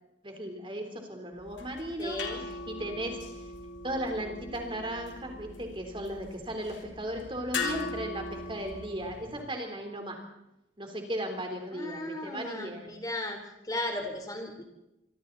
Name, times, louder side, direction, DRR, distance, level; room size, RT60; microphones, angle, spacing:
voice 1, 0.2-3.2 3.8-10.2 10.8-13.0, right 1 dB, 25° right, 3 dB, 3.8 m, -36 dB
sound 1, 1.4-9.4, left 3 dB, 80° left, 3.8 m, -40 dB
voice 2, 2.0-2.4 11.7-13.4 13.6-14.6, left 1 dB, 20° left, 4 dB, 4.0 m, -35 dB
27.0 x 24.5 x 4.2 m, 0.89 s
head